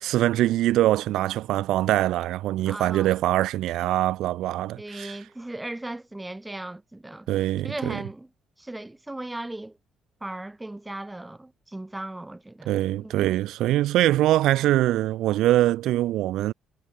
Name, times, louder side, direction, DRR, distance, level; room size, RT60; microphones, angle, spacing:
voice 1, 0.0-5.2 7.3-8.0 12.7-16.5, right 14 dB, 70° right, 3.3 m, -23 dB
voice 2, 2.7-3.2 4.7-7.3 7.6-8.3 8.6-9.8 10.2-13.3, right 1 dB, 5° right, 5.0 m, -37 dB
cardioid pair, 175°, 0 cm